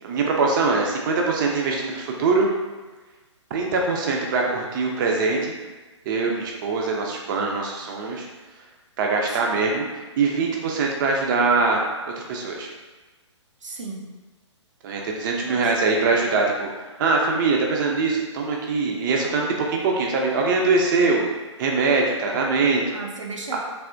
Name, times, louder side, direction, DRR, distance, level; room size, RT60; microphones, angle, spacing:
voice 1, 0.0-2.5 3.5-5.5 6.1-8.3 9.0-9.8 10.2-11.9 12.2-12.7 14.8-16.7 17.0-21.2 21.6-23.0 23.5-23.6, right 4 dB, 40° right, 0 dB, 0.5 m, -22 dB
voice 2, 9.3-9.7 13.6-14.1 15.4-16.2 22.9-23.6, right 3 dB, 85° right, -1 dB, 0.6 m, -37 dB
3.4 x 2.6 x 2.5 m, 1.2 s
hypercardioid pair, 130°, 16 cm